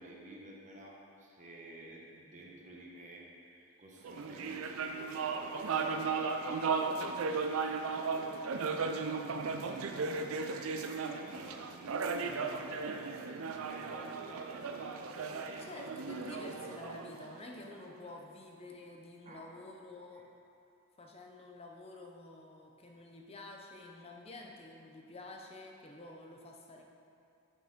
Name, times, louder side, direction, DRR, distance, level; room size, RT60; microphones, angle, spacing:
voice 1, 0.0-13.2 13.6-15.6 16.0-16.1 19.2-19.5 20.1-20.2, right 1 dB, 35° right, -2 dB, 0.9 m, -52 dB
sound 1, 4.0-17.7, right 4 dB, 70° right, 0.4 m, -36 dB
voice 2, 15.5-20.3 21.0-26.8, left 2 dB, 25° left, 1 dB, 0.6 m, -49 dB
7.3 x 5.8 x 3.6 m, 2.6 s
head